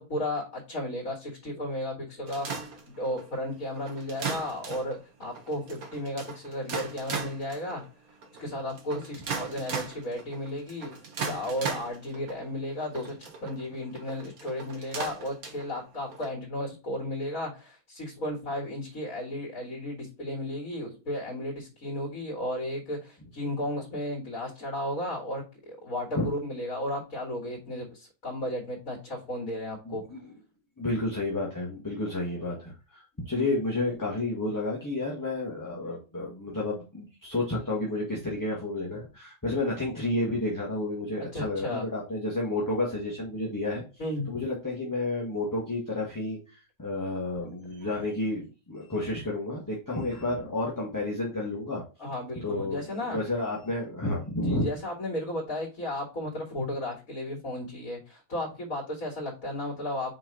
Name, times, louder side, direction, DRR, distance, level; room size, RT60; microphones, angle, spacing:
voice 1, 0.0-2.7 3.0-7.8 8.4-10.9 11.2-30.0 41.3-41.9 44.0-44.3 52.0-53.2 54.4-60.1, left 1 dB, 65° left, 0 dB, 2.4 m, -34 dB
sound 1, 2.3-16.3, right 5 dB, 80° right, 1.7 m, -38 dB
voice 2, 29.8-30.3 30.8-43.8 44.3-51.8 52.4-54.7, left 2 dB, 15° left, -3 dB, 1.5 m, -31 dB
5.6 x 4.4 x 3.8 m, 0.32 s
omnidirectional pair, 1.5 m